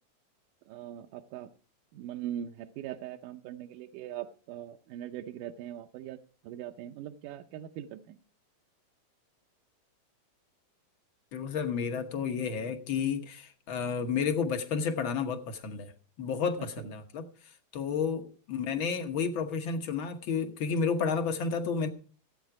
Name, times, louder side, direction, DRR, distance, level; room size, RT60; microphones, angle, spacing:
voice 1, 0.7-1.5 1.9-8.2 16.8-16.9, right 11 dB, 75° right, 2.1 m, -41 dB
voice 2, 11.3-15.9 16.2-17.2 17.7-21.9, left 6 dB, 65° left, 1.2 m, -31 dB
16.5 x 8.9 x 4.8 m
omnidirectional pair, 4.0 m